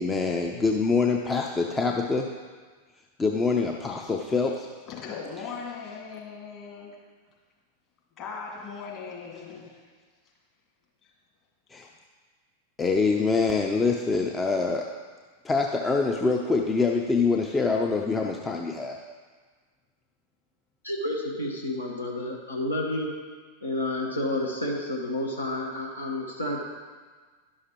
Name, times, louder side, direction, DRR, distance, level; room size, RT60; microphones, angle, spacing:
voice 1, 0.0-2.3 3.2-4.7 11.7-11.9 12.8-14.9 15.4-19.0, left 4 dB, 15° left, 1 dB, 0.5 m, -25 dB
voice 2, 4.9-7.0 8.2-9.8, left 5 dB, 35° left, -3 dB, 2.1 m, -38 dB
voice 3, 20.8-23.1 23.6-26.6, left 1 dB, 80° left, -1 dB, 1.1 m, -30 dB
11.0 x 6.5 x 3.0 m, 1.5 s
figure-of-eight pair, 90°, 0 cm